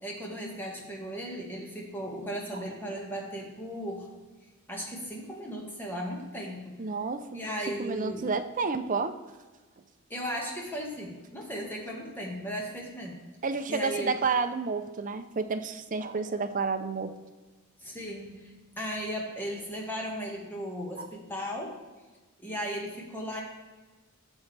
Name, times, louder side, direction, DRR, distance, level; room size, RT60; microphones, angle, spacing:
voice 1, 0.0-4.1 4.7-6.8 7.3-8.3 10.1-13.2 13.7-14.2 17.8-21.7 22.4-23.4, equal, 10° left, -2 dB, 1.7 m, -36 dB
voice 2, 6.8-7.4 7.8-9.2 13.4-17.1 21.0-21.1, right 4 dB, 35° right, 8 dB, 0.6 m, -30 dB
11.5 x 7.1 x 3.4 m, 1.3 s
head